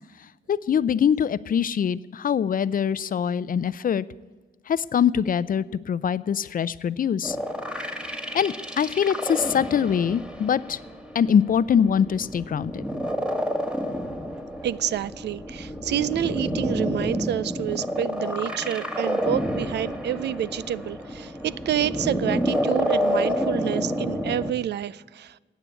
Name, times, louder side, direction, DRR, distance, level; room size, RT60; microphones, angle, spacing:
voice 1, 0.5-4.1 4.7-7.4 8.3-10.8 11.1-12.8, left 8 dB, 50° left, 0.5 m, -23 dB
sound 1, 7.2-24.5, equal, 5° right, 1.6 m, -29 dB
voice 2, 14.6-25.4, right 11 dB, 65° right, 0.4 m, -28 dB
15.5 x 8.9 x 8.2 m
cardioid pair, 75°, 19 cm